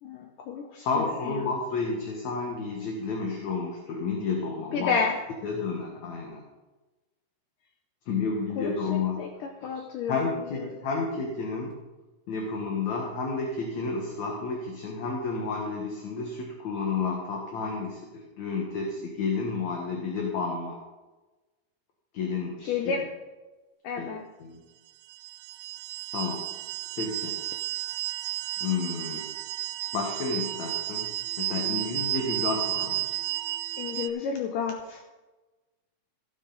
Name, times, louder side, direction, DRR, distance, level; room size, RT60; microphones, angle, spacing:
voice 1, 0.0-1.5 4.7-5.2 8.6-10.8 22.7-23.2 23.8-24.3 33.8-35.0, left 6 dB, 75° left, 3 dB, 2.1 m, -31 dB
voice 2, 0.7-5.0 5.4-6.4 8.1-9.2 9.6-9.7 10.1-11.8 12.3-20.8 22.1-22.9 24.0-24.1 24.4-24.6 26.1-26.5 27.0-27.4 28.6-29.3 29.9-33.0, left 4 dB, 60° left, 0 dB, 2.3 m, -31 dB
sound 1, 25.1-34.1, right 18 dB, 85° right, 2.7 m, -33 dB
16.0 x 9.4 x 4.0 m, 1.2 s
omnidirectional pair, 4.5 m